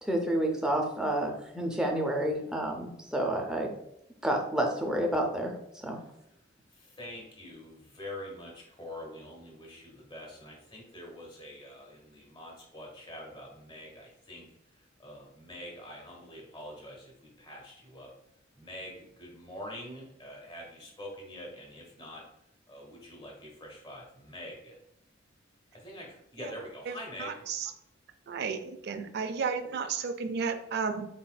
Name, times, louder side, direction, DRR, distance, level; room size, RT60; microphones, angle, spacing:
voice 1, 0.0-3.7 4.2-5.5 5.8-6.0, right 1 dB, 5° right, 1 dB, 0.5 m, -29 dB
voice 2, 6.7-14.5 15.0-18.1 18.6-22.2 22.7-24.8 25.7-27.4, left 1 dB, 25° left, -1 dB, 1.1 m, -45 dB
voice 3, 26.9-27.7 28.3-28.6 28.8-31.1, right 5 dB, 55° right, 9 dB, 0.4 m, -33 dB
4.1 x 4.0 x 2.2 m, 0.78 s
head